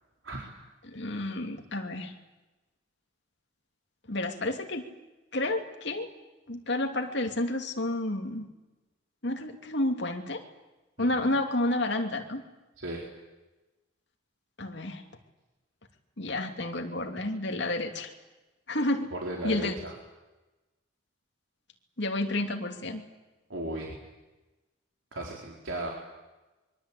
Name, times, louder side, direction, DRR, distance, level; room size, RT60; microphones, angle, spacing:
voice 1, 0.9-2.1 4.1-4.8 5.3-6.1 6.5-8.5 9.2-10.4 11.0-12.4 14.6-15.0 16.2-18.1 18.7-19.1 19.4-19.7 22.0-23.0, left 1 dB, 65° left, 4 dB, 2.8 m, -30 dB
voice 2, 19.1-19.9 23.5-24.0 25.1-25.9, right 1 dB, 85° right, -2 dB, 4.2 m, -35 dB
25.0 x 23.5 x 8.5 m, 1.1 s
head